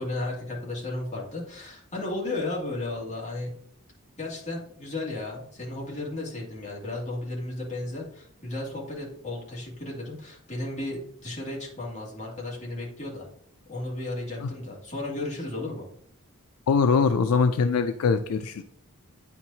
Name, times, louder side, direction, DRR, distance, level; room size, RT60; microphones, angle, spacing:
voice 1, 0.0-3.5 4.2-13.3 13.7-15.8, left 2 dB, 35° left, -4 dB, 2.0 m, -34 dB
voice 2, 16.7-18.6, left 5 dB, 75° left, 8 dB, 0.4 m, -22 dB
9.3 x 4.5 x 2.8 m, 0.64 s
head